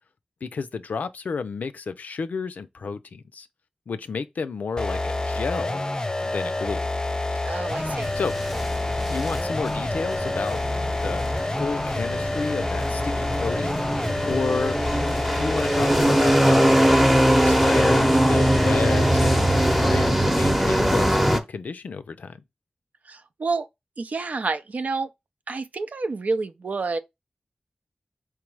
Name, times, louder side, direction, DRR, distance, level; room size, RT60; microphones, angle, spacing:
voice 1, 0.4-3.5 3.9-5.8 6.2-6.9 8.1-8.4 9.1-10.6 11.0-11.2 11.6-13.9 14.2-14.8 15.4-17.1 17.4-19.5 19.8-22.4, left 5 dB, 90° left, 0.4 m, -31 dB
sound 1, 4.8-20.3, left 2 dB, 30° left, 0.4 m, -28 dB
voice 2, 7.5-8.1 23.1-23.7 24.0-25.1 25.5-27.0, right 3 dB, 75° right, 0.4 m, -29 dB
sound 2, 7.7-21.4, right 1 dB, 5° right, 0.7 m, -22 dB
4.6 x 2.0 x 4.5 m
cardioid pair, 45°, 3 cm